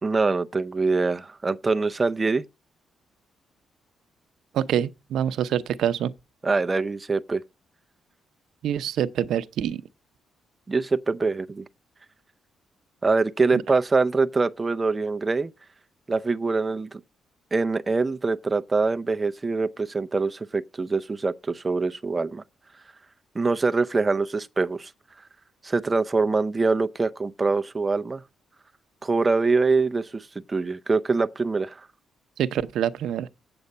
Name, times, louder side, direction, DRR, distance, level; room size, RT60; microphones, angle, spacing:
voice 1, 0.0-2.4 6.4-7.4 10.7-11.6 13.0-15.5 16.1-17.0 17.5-22.4 23.3-24.9 25.6-28.2 29.0-31.9, right 3 dB, 20° right, 0.5 m, -24 dB
voice 2, 4.5-6.1 8.6-9.8 13.5-13.6 32.4-33.3, right 10 dB, 80° right, 0.7 m, -26 dB
8.3 x 7.8 x 5.3 m
cardioid pair, 130°, 0 cm